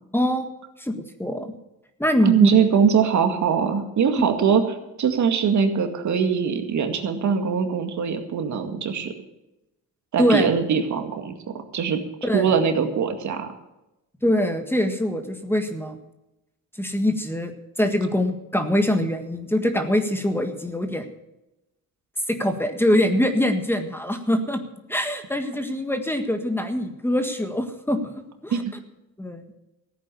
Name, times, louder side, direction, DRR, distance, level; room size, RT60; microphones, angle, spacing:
voice 1, 0.1-1.5 2.0-2.6 10.2-10.5 12.2-12.5 14.2-16.0 16.8-21.1 22.3-24.6 24.9-28.2 28.4-28.5 29.2-29.4, left 1 dB, 5° left, 7 dB, 1.6 m, -23 dB
voice 2, 2.2-4.6 5.0-9.1 10.1-11.3 11.7-12.0 12.3-13.5 28.5-28.7, right 6 dB, 55° right, 6 dB, 2.1 m, -22 dB
15.0 x 9.0 x 7.0 m, 0.93 s
cardioid pair, 90°, 34 cm